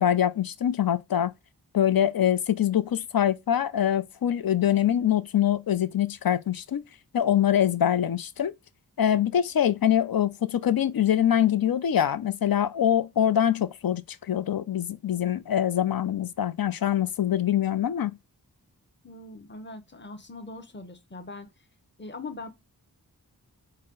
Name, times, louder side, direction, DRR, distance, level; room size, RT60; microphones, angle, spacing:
voice 1, 0.0-1.3 1.7-6.8 7.1-8.5 9.0-14.0 14.3-18.2, left 10 dB, 65° left, 0.5 m, -24 dB
voice 2, 19.0-21.5 22.0-22.5, left 3 dB, 30° left, 0.9 m, -41 dB
4.2 x 2.1 x 3.8 m
wide cardioid pair, 50°, 39 cm